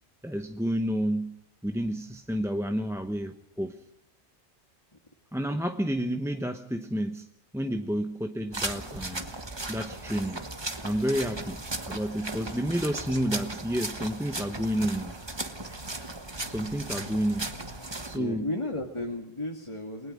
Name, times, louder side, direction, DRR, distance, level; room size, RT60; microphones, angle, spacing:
voice 1, 0.2-1.4 1.6-3.8 5.3-7.3 7.5-9.3 9.7-10.5 10.8-11.6 11.9-15.2 16.5-17.5 18.0-18.5, equal, 5° right, 5 dB, 0.8 m, -30 dB
sound 1, 8.5-18.2, right 2 dB, 20° right, 1.4 m, -36 dB
voice 2, 17.9-20.1, left 1 dB, 25° left, 1 dB, 1.8 m, -34 dB
28.5 x 20.5 x 5.2 m, 0.68 s
omnidirectional pair, 1.3 m